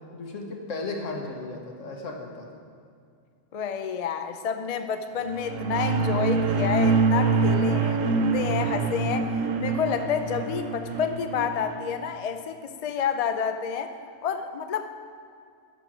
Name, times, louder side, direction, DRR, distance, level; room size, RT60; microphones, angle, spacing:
voice 1, 0.1-2.5, left 3 dB, 75° left, 1 dB, 1.6 m, -35 dB
voice 2, 3.5-13.9 14.2-14.9, left 7 dB, 55° left, 7 dB, 0.4 m, -29 dB
sound 1, 5.2-11.9, right 4 dB, 90° right, 1.1 m, -25 dB
13.0 x 5.3 x 6.1 m, 2.3 s
omnidirectional pair, 1.3 m